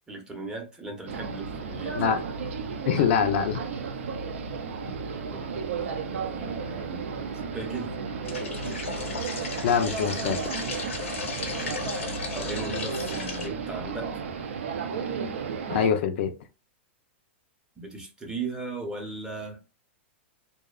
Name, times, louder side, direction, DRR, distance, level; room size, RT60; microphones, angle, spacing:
voice 1, 0.1-2.1 5.3-5.5 5.8-8.0 11.4-14.2 17.8-19.6, right 3 dB, 10° right, 0.6 m, -38 dB
sound 1, 1.1-15.9, right 5 dB, 80° right, 0.4 m, -33 dB
voice 2, 2.9-3.6 9.6-10.5 15.7-16.3, left 7 dB, 60° left, 0.4 m, -24 dB
sound 2, 8.2-13.5, left 5 dB, 90° left, 0.8 m, -35 dB
2.6 x 2.1 x 2.3 m
hypercardioid pair, 135°, 7 cm